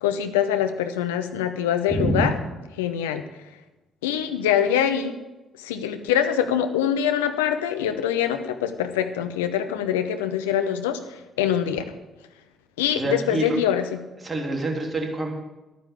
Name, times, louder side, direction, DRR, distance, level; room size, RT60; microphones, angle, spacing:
voice 1, 0.0-2.4 2.8-3.2 4.0-5.2 5.6-11.0 11.4-11.8 12.8-14.0, left 9 dB, 80° left, 9 dB, 0.8 m, -24 dB
voice 2, 1.9-2.4 13.0-13.6 14.2-15.3, right 2 dB, 25° right, 1 dB, 3.0 m, -26 dB
12.0 x 9.4 x 7.0 m, 1.1 s
figure-of-eight pair, 45°, 0 cm